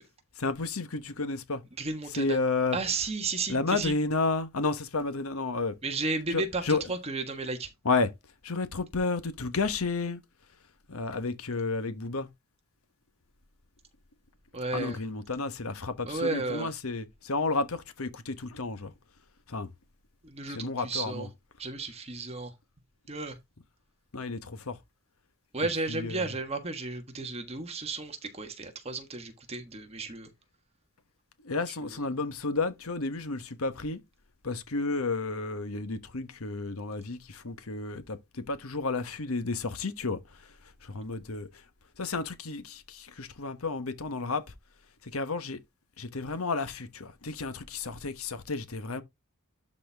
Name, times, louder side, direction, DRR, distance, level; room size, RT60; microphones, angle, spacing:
voice 1, 0.4-1.6 2.2-2.8 3.5-5.7 6.3-6.8 7.8-8.1 8.4-10.2 10.9-12.3 14.7-18.9 19.5-19.7 20.5-21.3 24.1-24.8 25.9-26.3 31.4-34.0 34.4-40.2 40.8-41.5 42.0-44.4 45.0-45.6 46.0-49.0, left 3 dB, 80° left, 1.2 m, -31 dB
voice 2, 1.8-2.4 2.7-3.9 5.8-7.7 14.5-15.0 16.1-16.7 20.2-21.3 21.6-22.5 23.1-23.4 25.5-30.3 31.8-32.0, right 3 dB, 30° right, 1.5 m, -33 dB
12.0 x 4.3 x 3.5 m
head